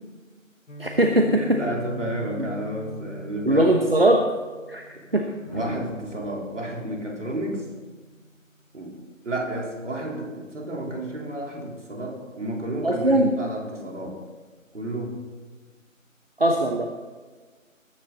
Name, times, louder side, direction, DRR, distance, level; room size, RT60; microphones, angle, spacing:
Guitar, 0.7-8.5, equal, 60° left, 1.5 m, -42 dB
voice 1, 0.8-1.6 2.4-2.5 3.5-4.2 4.7-5.3 5.6-5.7 12.8-13.3 16.4-16.9, right 1 dB, 45° right, 3 dB, 1.1 m, -20 dB
voice 2, 1.4-3.8 5.5-7.7 8.7-9.0 9.2-14.2 14.7-15.2, right 1 dB, 60° right, -1 dB, 4.1 m, -31 dB
sound 1, 5.3-8.4 10.0-10.3, right 1 dB, 10° right, 1.9 m, -41 dB
20.5 x 9.8 x 4.1 m, 1.4 s
figure-of-eight pair, 175°, 40 cm